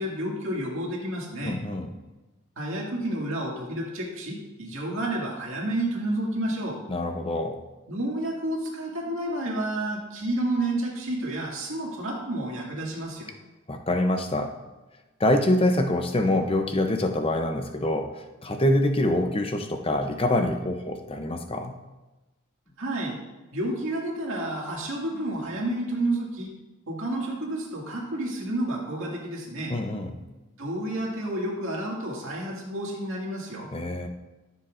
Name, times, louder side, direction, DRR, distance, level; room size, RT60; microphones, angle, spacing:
voice 1, 0.0-1.6 2.6-6.8 7.9-13.3 22.8-23.2 23.5-26.5 26.9-29.7 30.6-33.7, right 1 dB, 65° right, -2 dB, 2.1 m, -30 dB
voice 2, 1.4-1.9 6.9-7.6 13.7-14.6 15.2-21.8 29.7-30.2 33.7-34.1, left 1 dB, 25° left, 5 dB, 0.6 m, -25 dB
14.0 x 7.1 x 2.5 m, 1.1 s
head